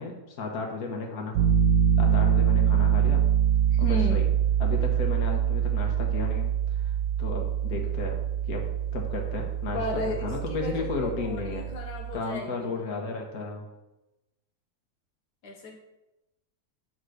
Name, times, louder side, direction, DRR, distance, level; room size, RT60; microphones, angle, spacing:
voice 1, 0.0-1.5 2.0-3.2 3.8-4.3 4.6-6.9 7.2-8.6 8.9-11.7 12.1-13.7, left 4 dB, 70° left, 1 dB, 1.9 m, -34 dB
Piano, 1.3-12.2, right 9 dB, 75° right, 1.2 m, -25 dB
voice 2, 3.7-4.3 9.7-12.7 15.4-15.7, left 1 dB, 85° left, -1 dB, 1.8 m, -34 dB
9.2 x 4.0 x 6.4 m, 0.96 s
omnidirectional pair, 1.7 m